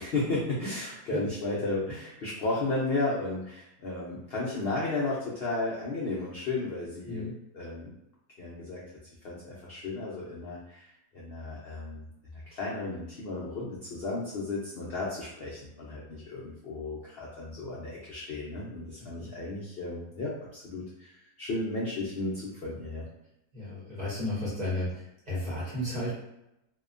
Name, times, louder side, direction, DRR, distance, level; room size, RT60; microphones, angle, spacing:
voice 1, 0.0-7.3 7.5-7.9 8.4-8.8 9.2-12.1 12.5-23.1, left 2 dB, 80° left, -5 dB, 0.5 m, -34 dB
voice 2, 23.5-24.9 25.3-26.1, left 1 dB, 35° right, -9 dB, 0.8 m, -32 dB
2.8 x 2.1 x 2.4 m, 0.87 s
omnidirectional pair, 1.7 m